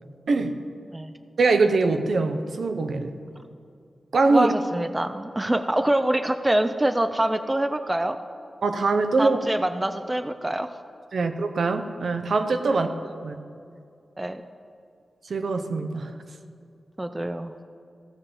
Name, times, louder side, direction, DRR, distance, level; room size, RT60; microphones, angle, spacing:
voice 1, 1.4-3.1 4.1-4.5 8.6-9.4 11.1-12.9 13.2-13.4 15.3-16.1, right 3 dB, 65° right, 8 dB, 0.7 m, -23 dB
voice 2, 4.3-8.2 9.2-10.8 12.7-12.9 14.2-14.4 17.0-17.5, right 1 dB, 15° right, 9 dB, 0.3 m, -25 dB
15.5 x 7.2 x 3.4 m, 2.4 s
wide cardioid pair, 130°, 0 cm